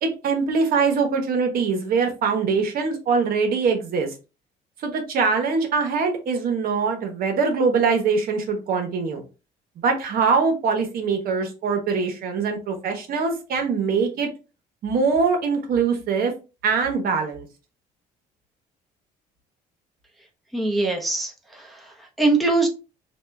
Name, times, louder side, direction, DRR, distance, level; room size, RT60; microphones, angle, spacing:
voice 1, 0.0-4.1 4.8-9.2 9.8-14.3 14.8-16.3 16.6-17.5, right 5 dB, 60° right, 4 dB, 1.1 m, -23 dB
voice 2, 20.5-22.7, right 3 dB, ahead, 0 dB, 0.8 m, -23 dB
4.2 x 2.3 x 3.2 m, 0.30 s
cardioid pair, 110°, 17 cm